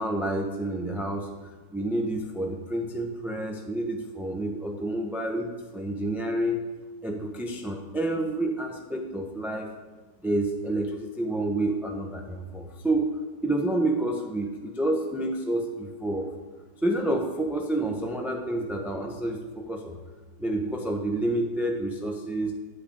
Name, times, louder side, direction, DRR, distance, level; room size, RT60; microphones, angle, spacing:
voice 1, 0.0-6.6 7.0-9.7 10.2-13.1 13.4-16.3 16.8-20.0 20.4-22.5, right 1 dB, ahead, 1 dB, 0.6 m, -29 dB
11.5 x 5.8 x 8.5 m, 1.3 s
omnidirectional pair, 2.0 m